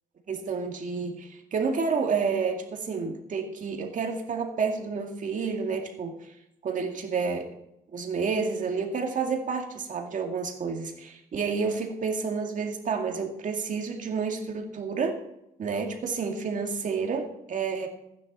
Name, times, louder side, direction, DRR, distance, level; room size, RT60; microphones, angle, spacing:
voice 1, 0.3-6.1 6.6-7.5 7.9-15.2 15.6-17.9, right 5 dB, 55° right, 3 dB, 2.2 m, -30 dB
15.0 x 9.8 x 4.3 m, 0.83 s
cardioid pair, 90°, 16 cm